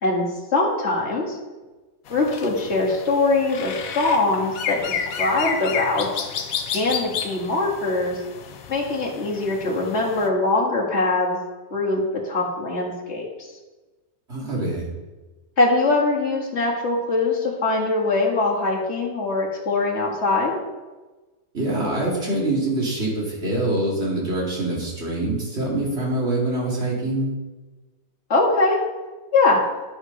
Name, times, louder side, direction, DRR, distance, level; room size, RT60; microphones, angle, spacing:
voice 1, 0.5-1.4 2.1-6.2 6.7-8.2 8.7-11.4 11.7-13.5 15.6-20.6 28.3-28.8 29.3-29.6, left 2 dB, 45° left, -3 dB, 2.3 m, -22 dB
sound 1, 2.1-10.3, left 7 dB, 65° left, 1.1 m, -31 dB
voice 2, 14.3-14.9 21.5-27.3, right 2 dB, 40° right, -5 dB, 3.0 m, -24 dB
12.0 x 5.1 x 5.3 m, 1.2 s
omnidirectional pair, 1.7 m